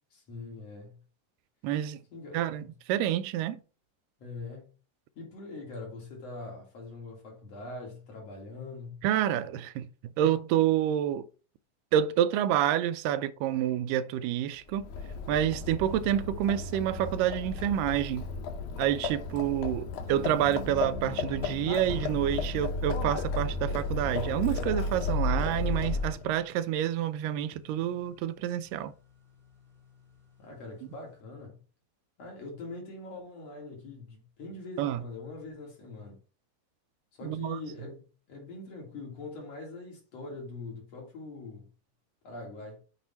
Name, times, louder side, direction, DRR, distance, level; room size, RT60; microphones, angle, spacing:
voice 1, 0.1-1.0 2.1-2.6 4.2-4.7 5.2-9.0 30.4-31.6 32.2-36.2 37.1-41.7 42.2-42.8, left 3 dB, 55° left, 2.8 m, -43 dB
voice 2, 1.6-2.0 2.3-3.6 9.0-9.9 10.2-11.3 11.9-14.9 15.3-18.3 18.8-28.9 34.8-35.0 37.2-37.6, right 11 dB, 90° right, 2.2 m, -28 dB
Livestock farm animals working animals, 14.7-26.3, left 3 dB, 70° left, 2.2 m, -33 dB
sound 1, 20.1-30.6, left 1 dB, ahead, 0.7 m, -47 dB
7.9 x 3.2 x 4.1 m
omnidirectional pair, 3.8 m